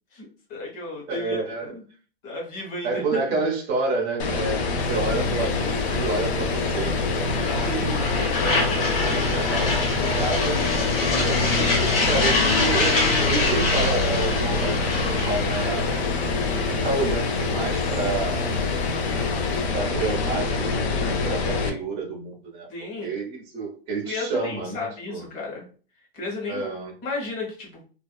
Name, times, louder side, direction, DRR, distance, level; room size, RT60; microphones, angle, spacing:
voice 1, 0.1-1.8 2.2-3.2 8.2-8.7 22.7-23.1 24.0-25.7 26.1-26.7 27.0-27.8, left 2 dB, 30° left, -1 dB, 1.0 m, -34 dB
voice 2, 1.1-1.7 2.8-10.7 11.1-13.0 13.3-18.5 19.7-22.7 23.0-25.3 26.5-27.0, right 3 dB, 20° right, 0 dB, 0.4 m, -30 dB
sound 1, 4.2-21.7, left 4 dB, 85° left, 0.6 m, -25 dB
sound 2, 4.8-19.6, left 2 dB, 65° left, 1.1 m, -27 dB
2.5 x 2.2 x 2.2 m, 0.39 s
hypercardioid pair, 145°, 31 cm